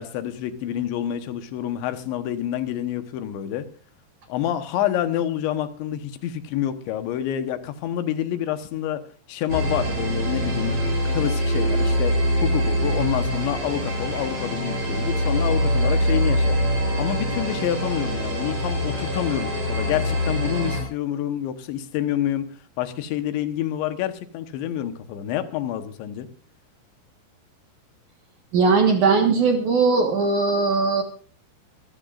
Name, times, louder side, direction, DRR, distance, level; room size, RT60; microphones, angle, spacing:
voice 1, 0.0-3.7 4.3-9.0 9.3-22.5 22.8-26.3, left 11 dB, 80° left, 10 dB, 3.4 m, -28 dB
sound 1, 9.5-20.8, equal, 35° right, 6.8 m, -24 dB
voice 2, 28.5-31.0, right 4 dB, 60° right, 4 dB, 2.3 m, -19 dB
25.5 x 14.5 x 2.5 m, 0.39 s
omnidirectional pair, 5.2 m